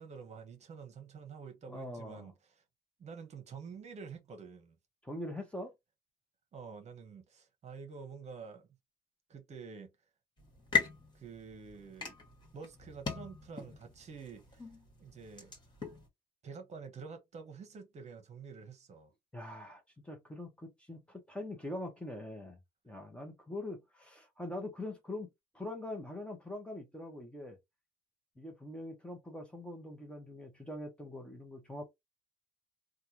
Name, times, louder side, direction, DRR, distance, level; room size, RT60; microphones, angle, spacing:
voice 1, 0.0-2.6 3.0-4.8 6.5-8.7 9.3-9.9 11.1-12.1 12.5-14.7 15.0-15.5 16.4-19.1, right 5 dB, 40° right, 1.1 m, -48 dB
voice 2, 1.7-2.3 5.0-5.7 19.3-22.6 22.8-25.3 25.5-27.6 28.4-31.8, left 1 dB, 5° left, 1.0 m, -43 dB
sound 1, 10.4-16.1, left 5 dB, 25° left, 1.7 m, -38 dB
3.3 x 2.4 x 2.8 m
cardioid pair, 110°, 17 cm